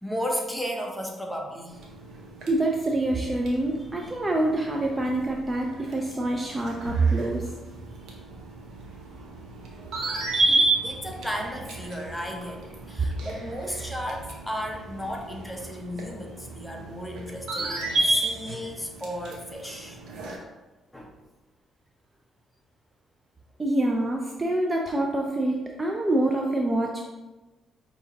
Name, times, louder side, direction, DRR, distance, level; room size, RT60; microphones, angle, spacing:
voice 1, 0.0-1.8 4.0-4.1 7.8-7.9 10.4-20.0 20.9-21.1, equal, 5° left, 0 dB, 0.8 m, -34 dB
sound 1, 1.7-20.4, right 3 dB, 75° right, 0.8 m, -31 dB
voice 2, 2.5-7.5 23.6-27.0, right 1 dB, 20° right, 0 dB, 0.4 m, -26 dB
5.4 x 2.8 x 2.8 m, 1.1 s
cardioid pair, 90°, 0 cm